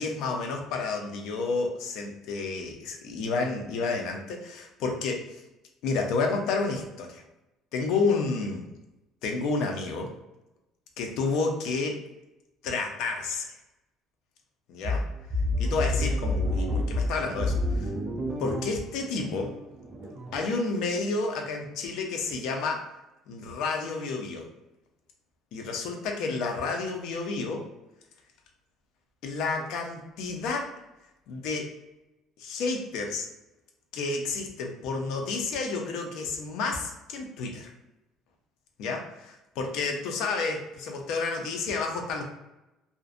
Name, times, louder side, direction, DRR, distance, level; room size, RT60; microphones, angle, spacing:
voice 1, 0.0-5.4 5.8-7.2 7.7-8.7 9.2-10.1 11.0-12.0 12.6-13.6 14.7-15.0 15.6-17.9 18.4-19.5 20.3-22.8 23.3-24.5 25.5-27.7 29.2-30.7 31.3-31.7 32.4-33.3 33.9-37.7 38.8-42.2, left 4 dB, 70° left, 3 dB, 0.5 m, -30 dB
sound 1, 14.8-20.5, left 1 dB, 25° right, 0.4 m, -29 dB
2.5 x 2.1 x 2.4 m, 0.96 s
cardioid pair, 150°, 0 cm